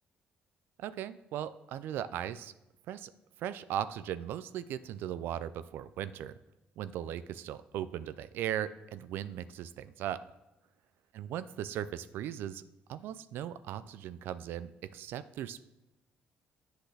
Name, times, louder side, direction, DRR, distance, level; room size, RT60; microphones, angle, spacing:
voice 1, 0.8-2.5 2.9-3.1 3.4-6.3 6.8-10.2 11.1-12.6 12.9-15.6, right 10 dB, 75° right, 14 dB, 0.3 m, -38 dB
8.0 x 6.0 x 3.3 m, 0.96 s
cardioid pair, 95°, 4 cm